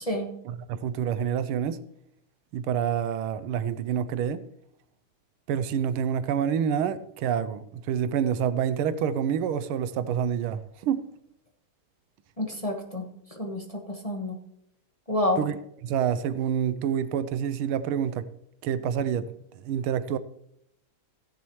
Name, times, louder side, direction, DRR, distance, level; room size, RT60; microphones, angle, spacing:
voice 1, 0.4-1.8 2.5-4.5 5.5-11.1 15.4-15.6 15.8-18.3 18.6-19.3 19.6-20.2, right 8 dB, 85° right, 1.5 m, -27 dB
voice 2, 12.4-13.1 13.4-14.3 15.1-15.4, left 1 dB, 20° left, 1.3 m, -28 dB
15.5 x 10.5 x 3.1 m
omnidirectional pair, 2.3 m